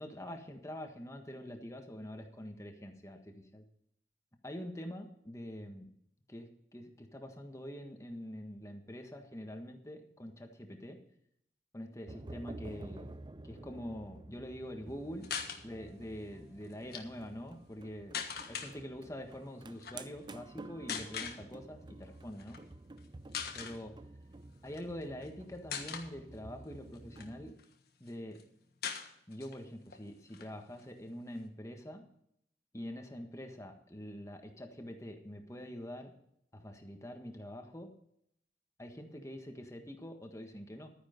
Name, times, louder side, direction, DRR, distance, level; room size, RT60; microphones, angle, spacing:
voice 1, 0.0-3.7 4.4-5.9 6.3-11.0 11.7-13.1 13.4-15.3 15.6-22.6 23.5-23.9 24.6-27.6 28.0-28.4 29.3-32.0 32.7-36.1 36.5-37.9 38.8-40.9, equal, 15° left, 4 dB, 1.6 m, -45 dB
sound 1, 12.1-27.5, right 2 dB, 25° right, 0.5 m, -51 dB
sound 2, 15.2-15.6 16.7-17.0 18.1-18.7 19.8-20.0 20.9-21.4 22.4-22.6 23.0-23.1 23.3-23.8 24.7-25.3 25.7-26.1 26.7-27.7 28.1-28.2 28.4-28.5 28.8-29.6 29.9-30.0 30.3-31.4, left 7 dB, 60° left, 1.5 m, -40 dB
12.0 x 9.8 x 5.2 m, 0.72 s
head